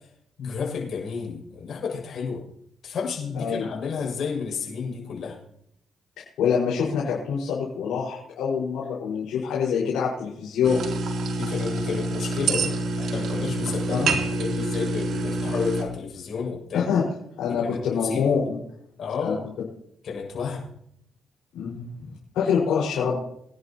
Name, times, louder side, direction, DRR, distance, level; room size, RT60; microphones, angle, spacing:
voice 1, 0.4-2.4 2.8-5.4 11.3-16.9 17.4-18.4 19.0-19.4 20.0-20.7, left 5 dB, 60° left, -2 dB, 7.3 m, -31 dB
voice 2, 6.4-10.8 13.9-14.1 16.7-17.0 17.4-18.6 19.2-19.4 21.5-22.1 22.3-23.2, left 6 dB, 85° left, -5 dB, 5.6 m, -25 dB
sound 1, 10.6-15.8, right 2 dB, 60° right, 3.6 m, -27 dB
25.0 x 11.0 x 3.1 m, 0.72 s
cardioid pair, 90°, 0 cm